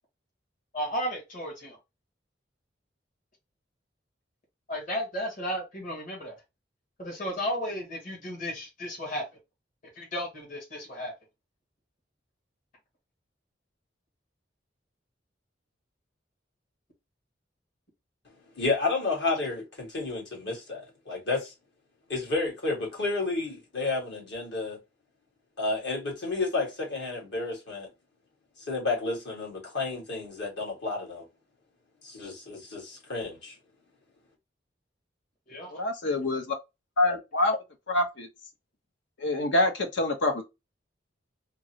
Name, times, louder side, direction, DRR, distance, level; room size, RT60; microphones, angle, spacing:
voice 1, 0.7-1.8 4.7-6.4 7.0-9.2 9.9-11.1 35.5-35.8, equal, 45° left, 1.3 m, -34 dB
voice 2, 18.5-21.5 22.1-24.8 25.6-27.9 28.7-31.2 32.0-33.5, left 3 dB, 65° left, 1.6 m, -31 dB
voice 3, 35.7-36.5 37.0-37.6 37.9-38.3 39.2-40.4, left 2 dB, 85° left, 0.8 m, -26 dB
3.7 x 2.0 x 2.7 m
head